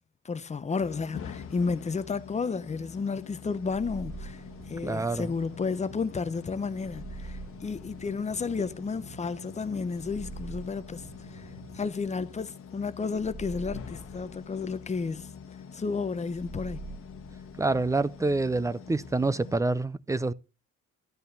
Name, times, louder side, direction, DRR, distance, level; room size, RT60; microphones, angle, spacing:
voice 1, 0.2-4.4 4.7-11.1 11.3-15.3 15.7-16.8, left 4 dB, 25° left, 0.7 m, -32 dB
sound 1, 0.8-19.6, left 7 dB, 45° left, 1.5 m, -45 dB
sound 2, 3.5-5.7 6.7-8.9 9.9-12.2 13.0-15.2 16.2-18.4, right 3 dB, 30° right, 4.7 m, -45 dB
sound 3, 3.8-11.8, right 7 dB, 65° right, 1.6 m, -53 dB
voice 2, 4.8-5.3 17.6-20.3, right 3 dB, 10° right, 0.5 m, -27 dB
13.0 x 8.3 x 3.3 m
cardioid pair, 145°, 30 cm